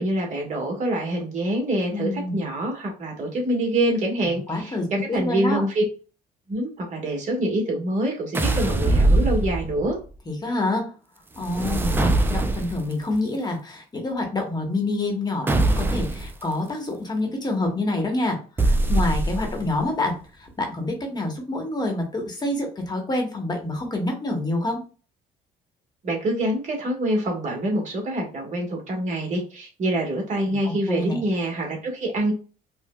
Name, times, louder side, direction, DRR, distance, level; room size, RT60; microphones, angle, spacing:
voice 1, 0.0-4.7 5.1-5.8 6.5-10.0 26.0-32.3, right 1 dB, 45° right, 0 dB, 1.3 m, -25 dB
voice 2, 1.9-2.4 4.2-5.6 10.3-10.9 11.3-24.8 30.4-31.2, left 2 dB, 25° left, 2 dB, 0.9 m, -27 dB
sound 1, 8.3-10.0 11.4-12.9 15.5-16.3 18.6-19.7, right 2 dB, 15° right, 0.3 m, -22 dB
4.6 x 2.1 x 2.2 m, 0.36 s
cardioid pair, 110°, 17 cm